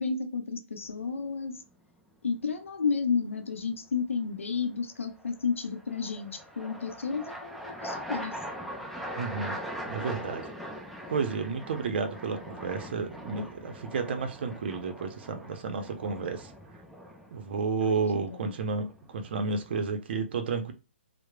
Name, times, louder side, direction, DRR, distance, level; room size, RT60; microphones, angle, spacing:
voice 1, 0.0-1.6 2.2-8.4 17.8-18.5, left 5 dB, 85° left, 0.6 m, -32 dB
sound 1, 0.9-1.4 5.2-19.8, equal, ahead, 0.3 m, -42 dB
voice 2, 9.2-9.6 9.9-10.4 11.1-16.5 17.3-20.7, right 5 dB, 55° right, 0.6 m, -31 dB
2.9 x 2.0 x 2.2 m
hypercardioid pair, 140°, 7 cm